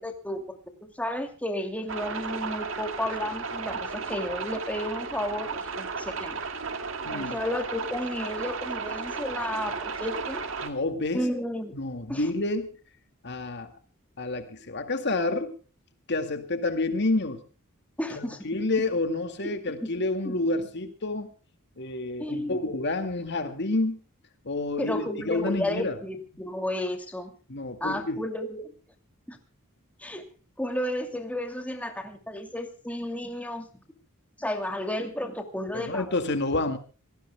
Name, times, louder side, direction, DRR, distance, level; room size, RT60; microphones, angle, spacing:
voice 1, 0.0-6.4 7.1-10.4 11.1-11.8 12.1-12.3 18.0-18.5 19.8-19.9 20.2-20.4 22.2-22.6 24.8-27.3 27.8-28.7 29.3-29.4 30.0-30.2 30.6-33.7 34.4-36.2, left 1 dB, 5° left, 5 dB, 2.5 m, -32 dB
sound 1, 1.9-10.7, right 4 dB, 65° right, 2.1 m, -34 dB
voice 2, 7.0-7.4 10.6-11.2 11.7-12.7 13.2-13.7 14.2-15.5 16.1-17.4 18.2-21.3 21.8-24.0 24.4-26.0 27.5-28.2 35.7-36.8, left 2 dB, 55° left, 7 dB, 2.1 m, -29 dB
27.0 x 18.5 x 2.3 m, 0.36 s
head